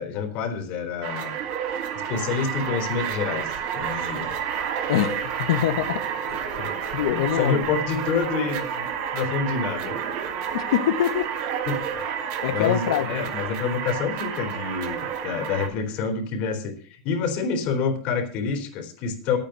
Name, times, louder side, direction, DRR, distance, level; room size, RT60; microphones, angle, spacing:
voice 1, 0.0-1.4 2.1-4.3 6.6-6.7 7.1-10.0 11.7-11.8 12.5-19.4, left 5 dB, 50° left, 3.6 m, -28 dB
sound 1, 1.0-15.7, right 8 dB, 55° right, 2.8 m, -30 dB
voice 2, 4.9-6.4 6.9-7.7 10.5-11.3 12.4-13.1, left 11 dB, 80° left, 1.2 m, -24 dB
10.0 x 9.2 x 6.6 m
supercardioid pair, 130°, 3 cm